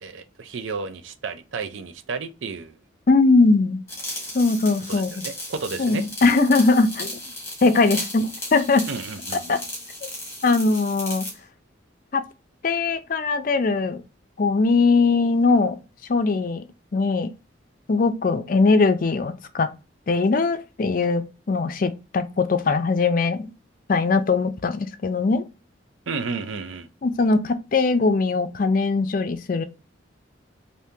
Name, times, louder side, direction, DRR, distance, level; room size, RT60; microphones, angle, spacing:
voice 1, 0.0-2.8 4.9-6.3 8.9-9.6 26.1-26.9, right 4 dB, 80° right, 0.5 m, -32 dB
voice 2, 3.1-3.8 4.3-5.1 5.8-7.2 7.6-8.8 9.5-9.6 10.4-11.3 12.1-12.2 12.6-14.0 14.4-15.8 16.1-16.6 16.9-17.3 17.9-19.7 20.1-23.5 23.9-25.4 27.0-29.6, left 3 dB, 45° left, 0.4 m, -20 dB
sound 1, 3.9-11.4, left 1 dB, 15° left, 1.4 m, -35 dB
3.5 x 2.7 x 2.7 m
head